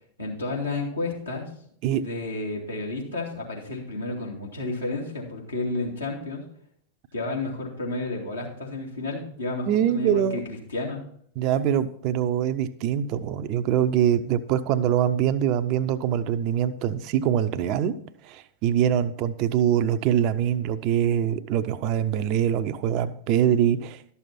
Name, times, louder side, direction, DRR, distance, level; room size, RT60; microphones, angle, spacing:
voice 1, 0.2-1.5 1.9-6.4 7.1-11.0, left 2 dB, 80° left, -3 dB, 2.6 m, -31 dB
voice 2, 9.7-10.4 11.4-17.9 18.2-24.0, right 10 dB, 40° right, 12 dB, 0.6 m, -24 dB
12.0 x 7.0 x 4.2 m, 0.64 s
figure-of-eight pair, 90°, 0 cm